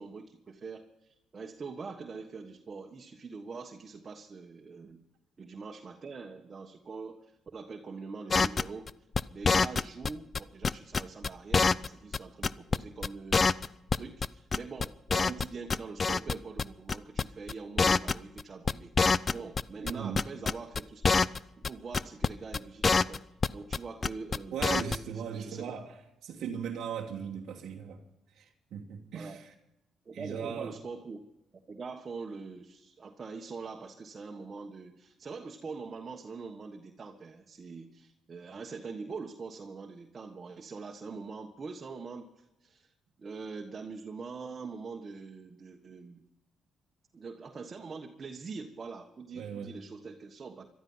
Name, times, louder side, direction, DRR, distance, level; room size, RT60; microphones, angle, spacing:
voice 1, 0.0-5.0 5.4-8.9 9.3-13.6 13.9-18.9 19.3-21.2 21.6-23.2 23.5-24.7 25.3-25.7 29.1-29.4 30.0-31.2 31.7-42.9 43.2-46.2 47.1-50.7, right 4 dB, 40° right, 2 dB, 1.5 m, -43 dB
sound 1, 8.3-10.1 10.3-11.9 12.1-12.2 12.4-12.8 13.0-13.1 13.3-14.3 14.5-15.4 15.7-16.3 16.6-16.7 16.9-17.2 17.5-17.6 17.8-18.4 18.7-19.9 20.2-21.4 21.6-21.7 21.9-22.3 22.5-23.8 24.0-24.4 24.6-25.0, left 4 dB, 35° left, 0.5 m, -25 dB
voice 2, 19.8-20.2 24.5-25.8 26.2-28.0 28.3-29.5 30.1-30.7 49.3-49.7, right 7 dB, 75° right, -1 dB, 1.3 m, -38 dB
18.5 x 12.5 x 5.7 m, 0.90 s
cardioid pair, 90°, 0 cm